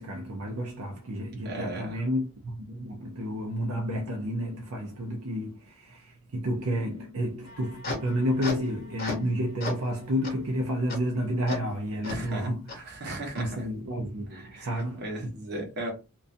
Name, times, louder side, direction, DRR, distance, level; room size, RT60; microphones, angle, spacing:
voice 1, 0.0-12.8 13.4-15.4, equal, 70° right, 0.5 m, -31 dB
voice 2, 1.4-2.0 12.1-13.5 14.3-15.9, right 1 dB, 45° right, 1.0 m, -37 dB
sound 1, 7.5-9.3 9.6-9.9 10.2-10.3 10.9-11.0 11.5-11.6 12.0-12.2 12.7-12.8 13.4-13.5, left 3 dB, 40° left, 0.7 m, -36 dB
2.5 x 2.2 x 2.5 m
head